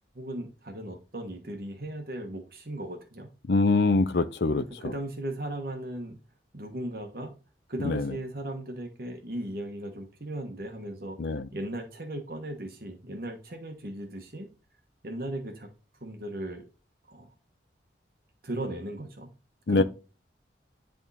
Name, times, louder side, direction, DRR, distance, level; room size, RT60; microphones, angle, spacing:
voice 1, 0.1-3.3 4.5-6.2 6.5-7.3 7.7-14.5 15.0-15.7 16.0-16.6 17.0-17.3 18.4-19.3 19.7-19.8, right 1 dB, 55° right, 1.3 m, -37 dB
voice 2, 3.5-4.6 7.8-8.0 11.2-11.5 19.7-19.8, left 3 dB, 65° left, 0.6 m, -23 dB
10.5 x 3.6 x 4.1 m
head